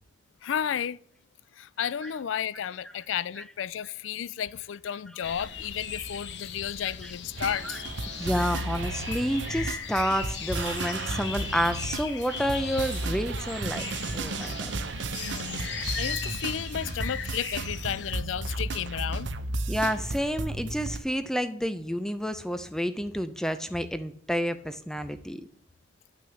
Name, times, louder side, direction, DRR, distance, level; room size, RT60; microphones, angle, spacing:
voice 1, 0.4-1.0 1.6-7.8 15.1-15.7 16.0-19.3, left 9 dB, 80° left, 0.4 m, -33 dB
sound 1, 5.2-18.1, left 7 dB, 65° left, 1.0 m, -38 dB
sound 2, 7.4-21.0, right 2 dB, 70° right, 0.8 m, -34 dB
voice 2, 8.2-13.9 14.1-14.7 19.7-25.5, equal, 5° left, 0.6 m, -30 dB
10.5 x 6.2 x 7.1 m
head